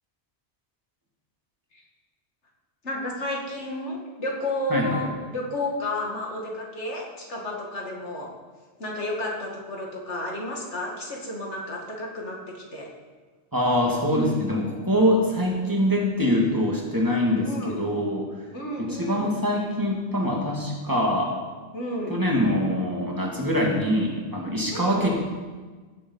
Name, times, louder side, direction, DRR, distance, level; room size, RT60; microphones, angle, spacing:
voice 1, 2.8-8.3 8.8-12.9 17.4-17.8 18.5-19.3 21.7-22.2 24.7-25.1, left 1 dB, 85° left, -1 dB, 2.5 m, -32 dB
voice 2, 4.7-5.0 13.5-18.2 18.8-21.3 22.1-25.1, equal, 20° right, -1 dB, 2.2 m, -24 dB
16.0 x 7.2 x 5.5 m, 1.4 s
omnidirectional pair, 1.2 m